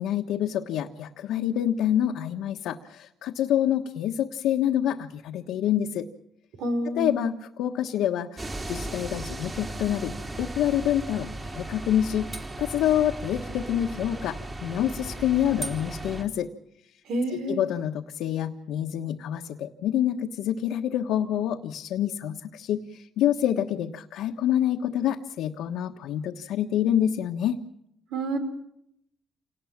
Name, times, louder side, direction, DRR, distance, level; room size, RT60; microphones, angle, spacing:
voice 1, 0.0-6.1 6.9-10.1 10.4-16.5 17.3-27.6, left 10 dB, 90° left, 2 dB, 1.3 m, -27 dB
voice 2, 6.6-7.2 17.1-17.6 28.1-28.4, right 1 dB, 85° right, 7 dB, 5.3 m, -28 dB
sound 1, 8.4-16.2, right 2 dB, 25° right, 4.0 m, -36 dB
28.5 x 19.0 x 7.4 m, 0.77 s
cardioid pair, 90°, 0 cm